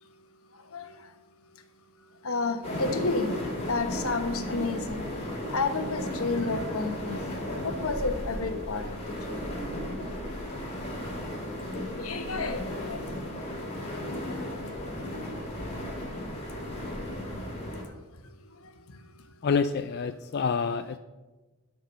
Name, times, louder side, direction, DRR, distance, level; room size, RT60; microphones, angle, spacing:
voice 1, 2.2-3.3 3.7-5.0 5.5-7.2 7.6-9.0 9.3-9.4 11.9-13.0 14.5-14.6, left 3 dB, 80° left, 8 dB, 1.1 m, -31 dB
sound 1, 2.6-17.8, left 1 dB, 30° left, 2.2 m, -35 dB
voice 2, 19.4-21.0, left 5 dB, 50° left, 9 dB, 0.4 m, -27 dB
8.3 x 6.0 x 6.8 m, 1.2 s
head